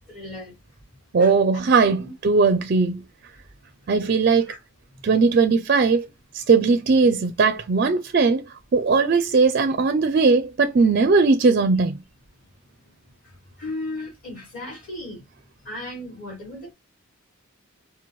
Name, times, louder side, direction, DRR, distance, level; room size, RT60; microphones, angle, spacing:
voice 1, 0.1-0.5 1.2-2.0 4.5-4.6 13.6-15.2 15.6-16.7, left 1 dB, 40° left, 2.4 m, -36 dB
voice 2, 1.1-3.0 3.9-4.5 5.0-6.1 6.3-8.4 8.7-12.0, right 4 dB, 45° right, 0.4 m, -19 dB
4.4 x 2.2 x 3.0 m
head